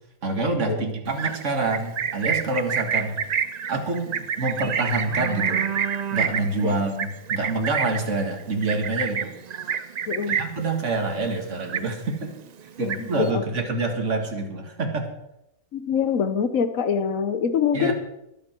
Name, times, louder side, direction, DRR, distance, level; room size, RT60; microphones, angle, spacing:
voice 1, 0.2-3.2 3.7-5.7 6.1-9.3 10.3-12.3 12.8-15.1 17.7-17.9, right 3 dB, 55° right, 4 dB, 2.3 m, -27 dB
Livestock farm animals working animals, 1.1-10.7 11.0-11.3 11.6-12.3 12.6-13.3, right 7 dB, 85° right, 0.3 m, -28 dB
voice 2, 10.1-10.4 12.8-13.4 15.7-17.9, left 7 dB, 65° left, 11 dB, 1.3 m, -24 dB
22.5 x 8.0 x 4.5 m, 0.87 s
omnidirectional pair, 1.5 m